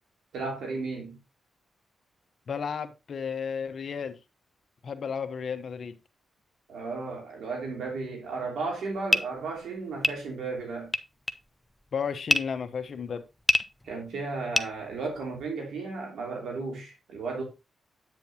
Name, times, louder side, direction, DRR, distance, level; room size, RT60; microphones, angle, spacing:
voice 1, 0.3-1.2 6.7-10.9 13.8-17.4, right 3 dB, 85° right, 2.8 m, -34 dB
voice 2, 2.5-4.2 4.8-6.0 11.9-13.2, left 6 dB, 60° left, 1.1 m, -33 dB
sound 1, 8.7-15.5, left 1 dB, 10° left, 0.6 m, -29 dB
8.5 x 7.6 x 2.9 m
cardioid pair, 65°, 0 cm